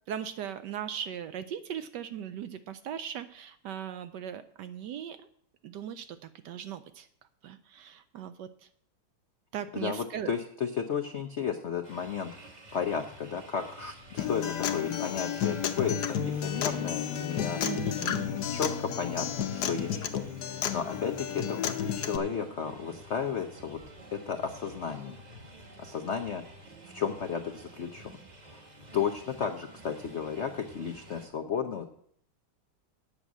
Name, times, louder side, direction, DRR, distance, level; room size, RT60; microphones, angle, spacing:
voice 1, 0.1-5.3 5.6-7.1 7.4-8.7 9.5-10.3 17.6-18.2, right 9 dB, 75° right, 11 dB, 1.0 m, -38 dB
voice 2, 9.7-12.3 12.7-17.6 18.0-20.3 20.7-23.8 24.1-25.2 25.8-26.4 26.9-28.2 28.5-28.6 28.9-31.8, left 7 dB, 85° left, 6 dB, 0.6 m, -33 dB
sound 1, 11.8-31.3, right 1 dB, 25° right, 1.1 m, -51 dB
Acoustic guitar, 14.2-22.2, left 8 dB, 65° left, 1.2 m, -32 dB
8.9 x 6.2 x 8.1 m, 0.64 s
omnidirectional pair, 2.2 m